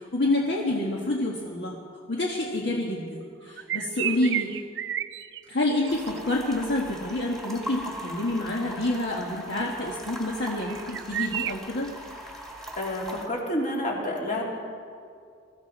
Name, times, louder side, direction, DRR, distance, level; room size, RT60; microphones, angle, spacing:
voice 1, 0.0-1.7 2.1-4.6 5.5-11.9, left 1 dB, 65° left, -2 dB, 1.5 m, -28 dB
sound 1, 3.5-6.2 10.4-11.5, right 11 dB, 70° right, 0.4 m, -31 dB
sound 2, 5.9-13.3, equal, 5° left, 1.7 m, -40 dB
voice 2, 12.8-14.4, left 1 dB, 45° left, -2 dB, 2.8 m, -29 dB
21.5 x 13.5 x 4.1 m, 2.3 s
head